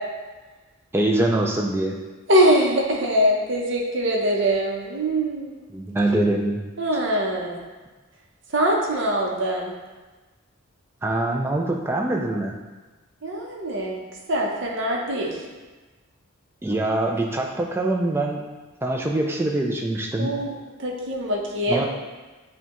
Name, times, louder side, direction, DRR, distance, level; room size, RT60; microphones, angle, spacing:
voice 1, 0.9-2.0 5.7-6.6 6.9-7.0 11.0-12.6 16.6-18.4 18.8-20.3 21.7-21.9, right 1 dB, 10° right, 1 dB, 0.3 m, -24 dB
voice 2, 2.3-5.5 6.8-7.6 8.5-9.7 13.2-14.0 14.3-15.3 20.2-20.5 20.8-21.9, right 1 dB, 60° right, -1 dB, 0.7 m, -22 dB
6.6 x 2.2 x 2.9 m, 1.3 s
head